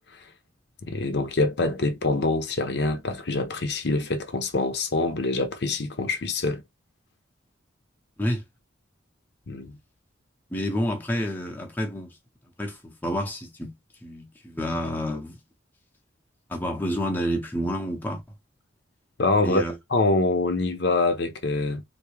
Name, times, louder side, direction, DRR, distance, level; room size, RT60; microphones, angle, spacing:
voice 1, 0.8-6.6 9.5-9.8 19.2-19.6 19.9-21.8, left 2 dB, 55° left, 0.7 m, -25 dB
voice 2, 10.5-12.1 12.6-13.7 14.0-15.4 16.5-18.2 19.4-19.7, equal, 10° left, 0.7 m, -29 dB
3.5 x 2.7 x 3.1 m
head